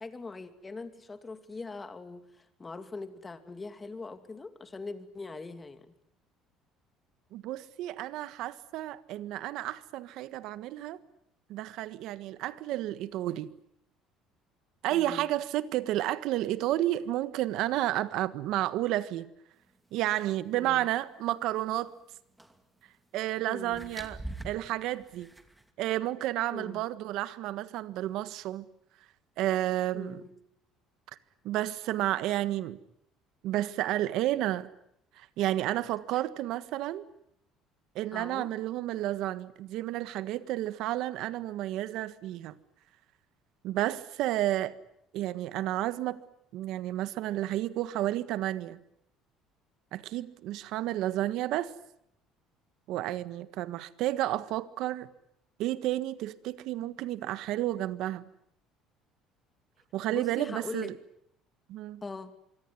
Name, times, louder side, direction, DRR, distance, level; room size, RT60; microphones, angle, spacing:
voice 1, 0.0-5.9 14.9-15.3 20.5-20.9 23.4-23.9 26.5-26.9 29.9-30.3 36.1-36.2 38.1-38.5 60.1-60.9 62.0-62.3, left 3 dB, 20° left, 2.7 m, -42 dB
voice 2, 7.3-11.0 11.5-13.5 14.8-19.3 19.9-21.9 23.1-24.2 24.4-25.3 25.8-28.7 29.4-30.2 31.4-32.8 33.4-34.7 35.2-37.0 37.9-42.6 43.6-44.8 45.1-46.2 46.5-48.8 49.9-51.7 52.9-55.1 55.6-58.2 59.9-60.9 61.7-62.0, right 14 dB, 70° right, 1.6 m, -31 dB
sound 1, 22.4-22.6 23.7-25.7, right 1 dB, 5° right, 2.6 m, -43 dB
25.5 x 24.5 x 9.6 m
cardioid pair, 135°, 0 cm